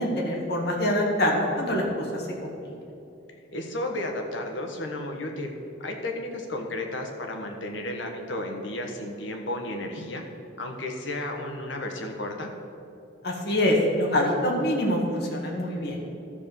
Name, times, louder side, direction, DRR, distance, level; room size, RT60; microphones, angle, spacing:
voice 1, 0.0-2.7 13.2-16.0, left 1 dB, 60° left, -1 dB, 1.6 m, -25 dB
voice 2, 3.5-5.5 5.8-10.2 10.6-12.5, left 1 dB, 85° left, 3 dB, 1.3 m, -33 dB
12.5 x 4.3 x 6.7 m, 2.8 s
head